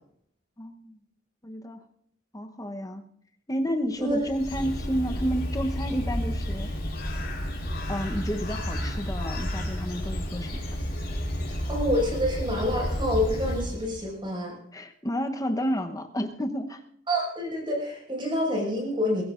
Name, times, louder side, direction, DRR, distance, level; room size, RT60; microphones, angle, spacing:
voice 1, 0.6-1.0 1.4-1.8 2.3-3.0 3.5-6.7 7.9-10.6 14.7-16.8, equal, 20° left, 6 dB, 1.0 m, -30 dB
Bird, 4.0-14.0, equal, 55° left, 4.8 m, -31 dB
voice 2, 11.5-14.6 17.1-19.2, left 1 dB, 25° right, -1 dB, 5.7 m, -27 dB
22.0 x 17.0 x 2.6 m, 0.68 s
head